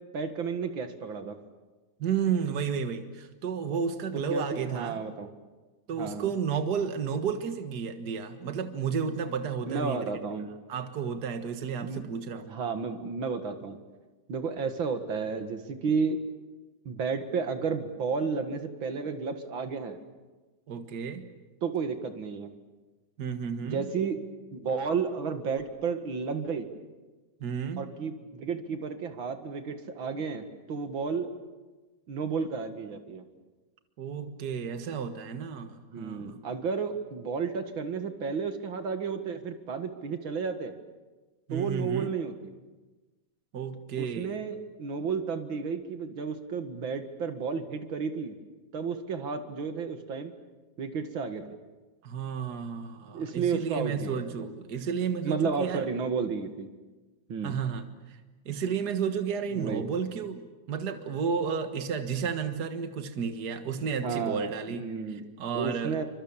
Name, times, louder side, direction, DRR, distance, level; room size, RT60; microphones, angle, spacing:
voice 1, 0.1-1.4 4.3-5.3 6.0-6.3 9.7-10.5 11.8-12.1 12.5-13.8 14.3-16.2 16.9-20.0 21.6-22.5 23.6-24.2 24.5-26.7 27.8-31.3 32.1-33.2 35.9-40.7 41.5-42.5 44.0-48.4 48.7-50.3 50.8-51.4 53.1-54.5 55.2-56.7 57.3-57.6 59.5-59.8 64.0-65.2 65.5-66.0, right 5 dB, 85° right, 7 dB, 2.6 m, -32 dB
voice 2, 2.0-5.0 5.9-10.1 10.7-12.6 20.7-21.3 23.2-23.8 27.4-27.8 34.0-36.4 41.5-42.1 43.5-44.4 52.0-55.9 57.4-58.2 58.5-64.8 65.1-66.0, right 6 dB, 55° right, 7 dB, 2.1 m, -32 dB
29.0 x 25.0 x 7.3 m, 1.2 s
omnidirectional pair, 2.1 m